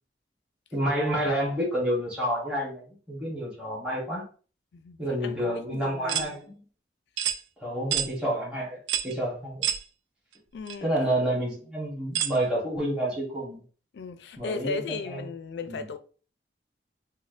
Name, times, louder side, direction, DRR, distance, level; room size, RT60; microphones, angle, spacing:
voice 1, 0.7-4.2 5.0-6.5 7.6-8.8 9.0-9.6 10.8-13.6 14.4-15.3 15.7-15.8, right 1 dB, 5° right, 1.1 m, -29 dB
voice 2, 4.7-6.4 10.5-10.9 13.9-16.0, left 4 dB, 70° left, 0.4 m, -36 dB
sound 1, 6.1-6.3 7.2-7.4 7.9-8.1 8.9-9.1 9.6-9.8 10.7-10.8 12.1-12.4, right 10 dB, 85° right, 0.3 m, -27 dB
4.1 x 2.1 x 2.4 m
head